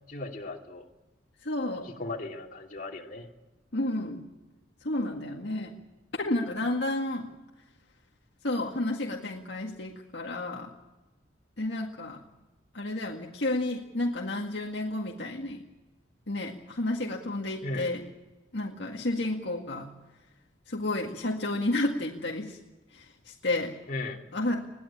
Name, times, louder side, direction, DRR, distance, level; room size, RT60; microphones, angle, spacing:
voice 1, 0.1-0.9 1.8-3.3 17.6-17.9 23.9-24.2, left 2 dB, 45° left, 0 dB, 2.8 m, -36 dB
voice 2, 1.4-1.9 3.7-4.2 4.8-5.8 6.1-7.3 8.4-10.7 11.6-12.2 12.7-15.6 16.3-18.0 18.5-19.9 20.7-22.6 22.9-23.7 24.3-24.6, left 2 dB, 60° left, 0 dB, 2.0 m, -31 dB
21.5 x 16.0 x 8.7 m, 1.1 s
head